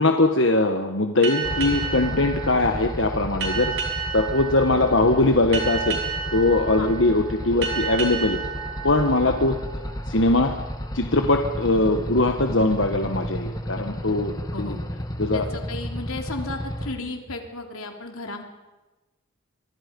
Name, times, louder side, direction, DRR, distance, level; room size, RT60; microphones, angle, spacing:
voice 1, 0.0-3.7 4.1-6.0 6.3-8.4 8.8-9.6 10.1-10.5 10.9-14.7 15.2-15.4, left 2 dB, 65° left, 5 dB, 1.4 m, -21 dB
sound 1, 1.2-10.4, right 6 dB, 65° right, 5.7 m, -32 dB
sound 2, 1.4-16.9, equal, 20° left, 1.5 m, -33 dB
voice 2, 14.5-14.9 15.3-18.4, left 2 dB, 90° left, 3 dB, 3.5 m, -34 dB
25.0 x 24.0 x 5.4 m, 1.1 s
head